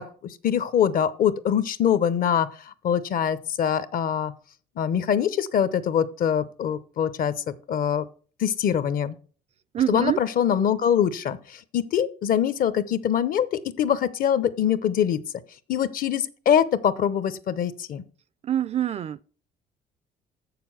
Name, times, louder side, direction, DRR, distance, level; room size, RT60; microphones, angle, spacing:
voice 1, 0.0-2.5 2.8-4.3 4.8-8.1 8.4-9.1 9.9-15.2 15.7-18.0, left 9 dB, 55° left, 0.8 m, -24 dB
voice 2, 9.7-10.2 18.4-19.2, right 10 dB, 40° right, 0.4 m, -25 dB
7.4 x 6.8 x 6.0 m
cardioid pair, 110°, 17 cm